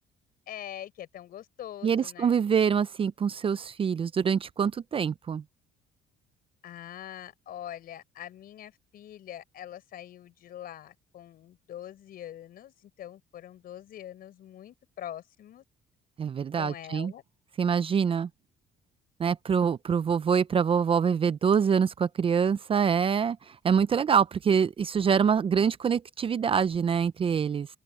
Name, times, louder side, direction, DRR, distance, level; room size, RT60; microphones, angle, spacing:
voice 1, 0.5-2.4 6.6-15.6 16.6-17.2, left 11 dB, 60° left, 4.6 m, -43 dB
voice 2, 1.8-5.4 16.2-17.1 17.6-18.3 19.2-27.7, right 7 dB, 30° right, 0.5 m, -25 dB
open air
cardioid pair, 110°, 17 cm